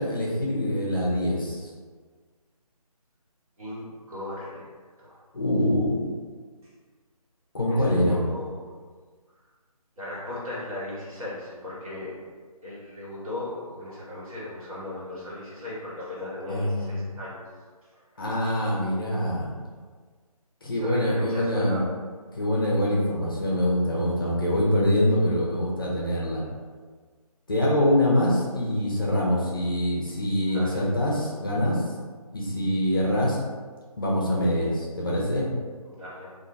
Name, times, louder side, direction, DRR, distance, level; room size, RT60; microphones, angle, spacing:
voice 1, 0.0-1.7 5.3-6.1 7.5-8.2 16.5-16.9 18.2-19.5 20.6-21.8 22.3-26.4 27.5-31.8 32.3-33.4 34.0-35.5, left 1 dB, 35° left, -4 dB, 0.5 m, -24 dB
voice 2, 3.6-4.7 5.0-5.2 7.6-8.7 10.0-12.1 12.6-17.4 17.9-18.0 20.7-21.8 30.5-30.9 35.8-36.3, left 2 dB, 65° right, -8 dB, 1.5 m, -37 dB
2.4 x 2.1 x 3.7 m, 1.5 s
figure-of-eight pair, 165°, 20 cm